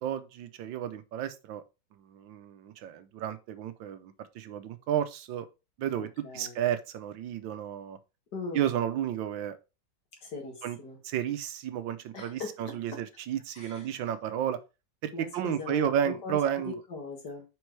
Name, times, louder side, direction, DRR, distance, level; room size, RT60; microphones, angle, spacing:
voice 1, 0.0-1.6 2.0-5.5 5.8-6.1 6.3-8.0 8.5-9.6 10.6-10.8 11.0-14.6 15.0-16.8, right 10 dB, 85° right, 1.5 m, -32 dB
voice 2, 6.0-6.6 8.3-8.6 10.2-11.0 12.1-13.0 13.5-13.9 15.1-17.4, left 4 dB, 60° left, 2.3 m, -40 dB
5.3 x 4.7 x 4.6 m
omnidirectional pair, 2.0 m